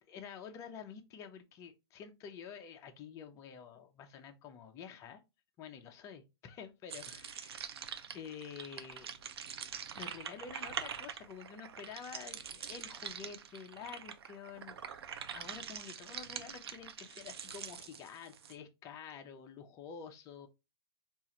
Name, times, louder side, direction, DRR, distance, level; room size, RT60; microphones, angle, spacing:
voice 1, 0.1-5.2 5.6-7.7 8.1-9.1 9.9-14.8 15.3-20.5, left 7 dB, 20° left, 0.5 m, -49 dB
sound 1, 6.9-18.6, right 7 dB, 70° right, 0.5 m, -45 dB
4.4 x 2.5 x 2.9 m
hypercardioid pair, 140°, 14 cm